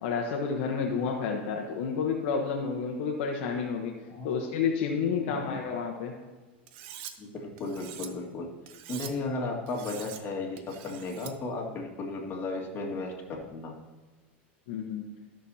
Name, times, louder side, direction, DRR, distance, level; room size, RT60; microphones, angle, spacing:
voice 1, 0.0-3.9 4.2-6.1 14.7-15.0, left 6 dB, 65° left, 1 dB, 1.1 m, -30 dB
voice 2, 5.1-5.6 7.2-8.5 8.9-13.1 13.5-13.7, left 3 dB, 35° left, -1 dB, 2.0 m, -35 dB
Cutlery silverware, 6.7-7.1 7.6-8.1 8.7-9.1 9.7-10.2 10.6-11.3, right 10 dB, 65° right, 0.8 m, -44 dB
14.0 x 6.3 x 2.8 m, 1.3 s
hypercardioid pair, 110°, 6 cm